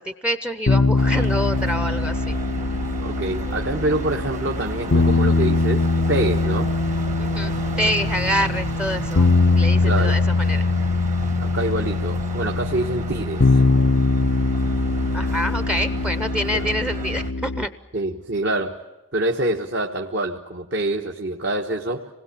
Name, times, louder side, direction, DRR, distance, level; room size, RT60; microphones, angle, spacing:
voice 1, 0.0-2.3 7.2-9.3 9.6-10.6 15.1-17.7, equal, 5° right, 11 dB, 0.8 m, -26 dB
sound 1, 0.7-17.7, left 3 dB, 70° left, 0.8 m, -22 dB
sound 2, 1.0-17.3, right 1 dB, 35° right, 1.4 m, -33 dB
voice 2, 3.0-6.7 9.8-10.2 11.4-13.6 16.5-16.7 17.9-18.8 19.1-22.1, right 2 dB, 50° right, 1 dB, 1.4 m, -26 dB
27.0 x 20.5 x 8.5 m, 1.1 s
head